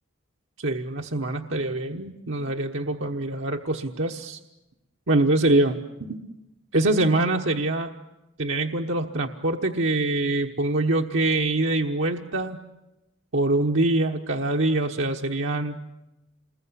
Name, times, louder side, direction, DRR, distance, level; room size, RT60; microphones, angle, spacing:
voice 1, 0.6-4.4 5.1-6.3 6.7-7.9 8.4-12.6 13.3-15.8, right 2 dB, 80° right, 2 dB, 1.3 m, -24 dB
28.0 x 21.5 x 9.9 m, 0.97 s
head